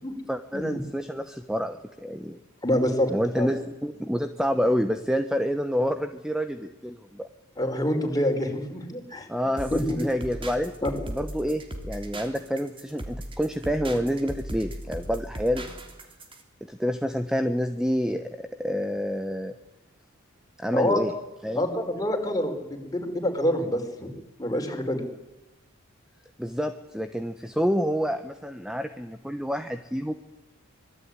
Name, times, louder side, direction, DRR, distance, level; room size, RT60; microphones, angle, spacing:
voice 1, 0.3-2.4 3.1-7.3 9.3-10.7 11.1-15.7 16.7-19.5 20.6-21.1 21.4-21.7 26.4-30.1, equal, 5° right, 9 dB, 1.0 m, -28 dB
voice 2, 2.6-3.5 7.6-9.3 9.7-10.0 10.8-10.9 20.7-21.0 21.6-24.1 24.4-25.1, left 1 dB, 15° left, 3 dB, 4.7 m, -26 dB
sound 1, 9.6-16.4, right 1 dB, 25° right, 3.2 m, -38 dB
25.5 x 20.0 x 9.8 m, 0.99 s
head